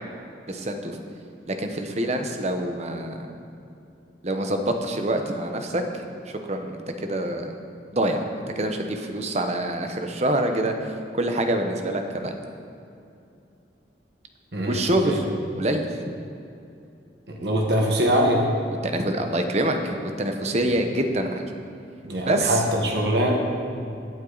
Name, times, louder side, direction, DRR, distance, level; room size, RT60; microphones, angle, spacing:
voice 1, 0.5-1.0 1.5-3.3 4.2-7.5 7.9-8.2 8.6-10.7 11.1-12.3 14.6-15.2 15.6-15.9 18.8-21.4 22.2-22.6, right 1 dB, 40° right, 5 dB, 1.0 m, -26 dB
voice 2, 14.5-15.2 17.3-18.5 22.0-23.4, equal, 70° right, 0 dB, 1.5 m, -23 dB
16.5 x 9.0 x 4.0 m, 2.6 s
head